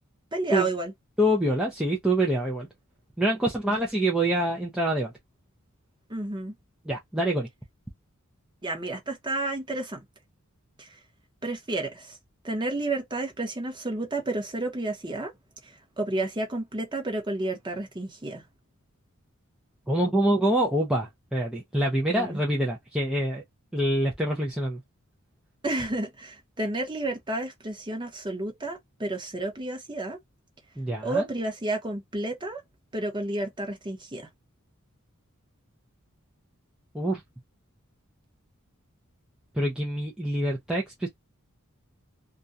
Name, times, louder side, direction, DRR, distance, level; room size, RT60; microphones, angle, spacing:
voice 1, 0.3-0.9 6.1-6.5 8.6-10.0 10.8-11.0 11.4-12.2 12.4-15.3 15.6-18.4 22.1-22.4 25.6-30.2 31.0-32.6 32.9-34.3, right 2 dB, 20° right, 0.8 m, -31 dB
voice 2, 1.2-2.7 3.2-5.1 6.9-7.5 19.9-23.4 23.7-24.8 30.8-31.3 36.9-37.2 39.6-41.1, right 1 dB, 5° right, 0.4 m, -25 dB
2.4 x 2.2 x 2.6 m
head